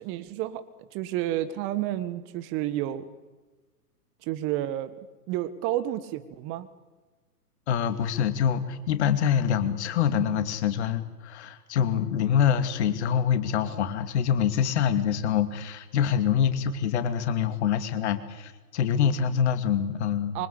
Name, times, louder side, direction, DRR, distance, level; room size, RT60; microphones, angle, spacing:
voice 1, 0.0-3.0 4.3-4.9 5.3-6.7 20.3-20.5, right 13 dB, 25° right, 13 dB, 1.5 m, -30 dB
voice 2, 7.7-20.4, left 8 dB, 45° left, 10 dB, 2.6 m, -25 dB
26.0 x 24.5 x 8.7 m, 1.2 s
figure-of-eight pair, 115°, 47 cm